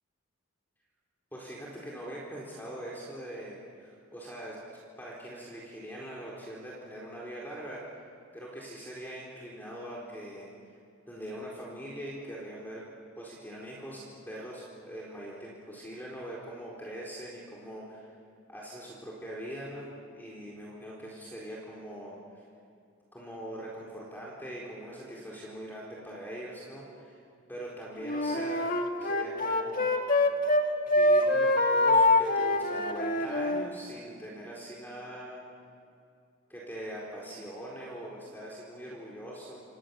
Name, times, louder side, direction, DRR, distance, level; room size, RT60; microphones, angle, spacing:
voice 1, 1.3-7.8 8.3-10.5 11.1-12.8 13.2-18.1 18.5-19.9 20.1-22.4 23.1-27.2 27.5-28.7 29.0-29.9 30.9-35.5 36.5-39.6, right 1 dB, 10° left, -4 dB, 4.3 m, -42 dB
Wind instrument woodwind instrument, 28.0-30.6 30.9-33.7, left 2 dB, 40° left, 2.0 m, -25 dB
29.0 x 27.5 x 7.2 m, 2.5 s
head